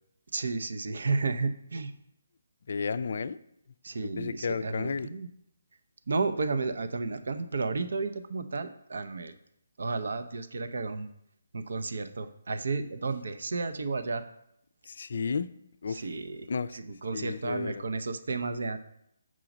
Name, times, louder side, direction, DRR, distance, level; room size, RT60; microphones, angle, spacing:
voice 1, 0.3-1.9 3.8-5.3 6.1-9.3 9.8-11.1 11.5-14.2 15.9-18.8, right 3 dB, 70° right, 10 dB, 0.6 m, -32 dB
voice 2, 2.7-3.4 4.0-5.1 14.9-15.5 15.8-16.0 16.5-16.8 17.1-17.8, left 5 dB, 60° left, 14 dB, 0.3 m, -32 dB
6.2 x 3.9 x 5.9 m, 0.76 s
hypercardioid pair, 155°, 0 cm